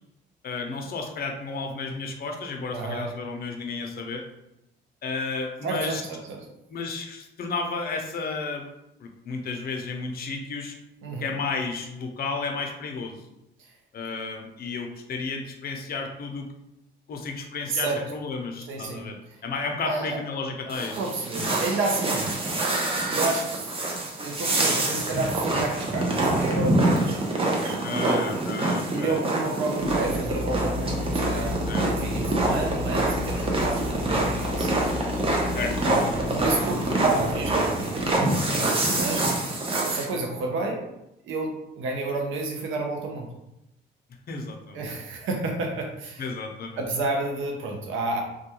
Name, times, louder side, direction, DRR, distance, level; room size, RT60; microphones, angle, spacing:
voice 1, 0.4-4.2 5.0-6.0 6.7-8.6 9.0-10.7 11.2-13.2 13.9-16.5 17.1-19.2 19.4-21.0 27.7-29.2 31.7-31.9 35.5-36.0 44.3-44.9 46.2-46.8, left 4 dB, 50° left, 3 dB, 0.5 m, -32 dB
voice 2, 2.7-3.1 5.6-6.4 11.0-11.3 13.6-13.7 17.7-18.0 18.7-19.0 19.8-20.2 21.0-22.3 23.1-23.7 24.2-28.4 28.9-31.5 31.9-34.8 35.8-39.3 39.9-40.9 41.2-43.3 44.7-46.2 46.8-48.2, right 3 dB, 80° right, 1 dB, 0.6 m, -31 dB
sound 1, 20.7-40.0, right 2 dB, 30° right, 0.6 m, -26 dB
Drill, 29.8-38.4, left 3 dB, 5° left, 0.8 m, -32 dB
2.2 x 2.2 x 2.9 m, 0.86 s
cardioid pair, 90°, 20 cm